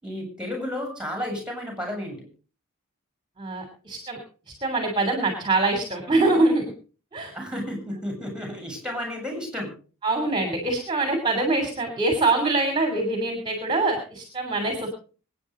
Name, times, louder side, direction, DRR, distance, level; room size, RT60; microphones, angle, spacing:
voice 1, 0.0-2.3 7.3-9.7, left 1 dB, 5° right, 3 dB, 7.8 m, -32 dB
voice 2, 3.4-4.2 4.6-6.7 7.1-7.3 10.0-14.9, right 2 dB, 20° right, 5 dB, 3.1 m, -24 dB
25.5 x 9.7 x 3.8 m, 0.38 s
head